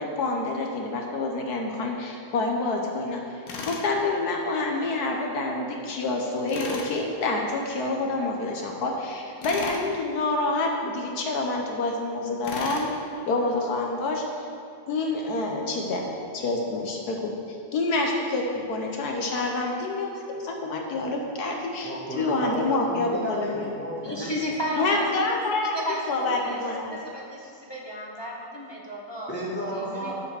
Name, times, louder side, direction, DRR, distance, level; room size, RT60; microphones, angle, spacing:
voice 1, 0.0-12.9 13.3-14.2 14.9-16.1 16.3-17.3 17.7-23.7 24.8-27.0, left 2 dB, 65° left, 1 dB, 1.3 m, -27 dB
Tools, 3.5-3.9 6.5-6.9 9.4-9.8 12.4-12.9, left 4 dB, 90° left, 1.6 m, -35 dB
voice 2, 21.8-24.2 29.3-30.1, equal, 5° left, -7 dB, 1.7 m, -33 dB
voice 3, 24.0-25.1 25.8-26.6 26.9-29.3 29.7-30.1, equal, 25° left, -3 dB, 0.6 m, -33 dB
7.7 x 5.2 x 6.3 m, 2.7 s
omnidirectional pair, 1.9 m